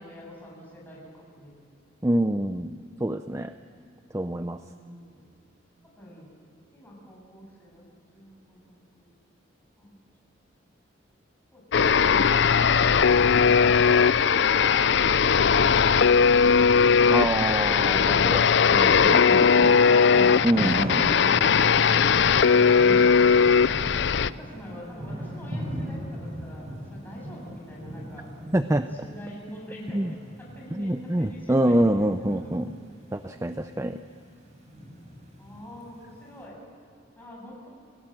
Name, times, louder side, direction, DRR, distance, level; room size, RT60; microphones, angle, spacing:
voice 1, 0.0-1.5 4.7-5.3 5.8-6.3 6.7-7.8 8.1-9.1 9.8-10.0 11.5-12.3 12.6-16.9 18.3-20.5 23.2-28.3 29.0-32.5 35.4-36.6 37.2-37.7, equal, 10° left, -3 dB, 7.5 m, -45 dB
voice 2, 2.0-3.5 4.1-4.6 17.1-18.5 18.7-19.8 20.4-21.1 28.5-28.9 29.9-30.1 30.7-32.7 33.1-34.0, right 1 dB, 15° right, 9 dB, 0.5 m, -26 dB
sound 1, 11.7-24.3, left 6 dB, 65° left, 0.5 m, -19 dB
Thunder / Rain, 20.1-36.1, equal, 35° right, 7.7 m, -37 dB
29.5 x 18.0 x 7.6 m, 2.5 s
head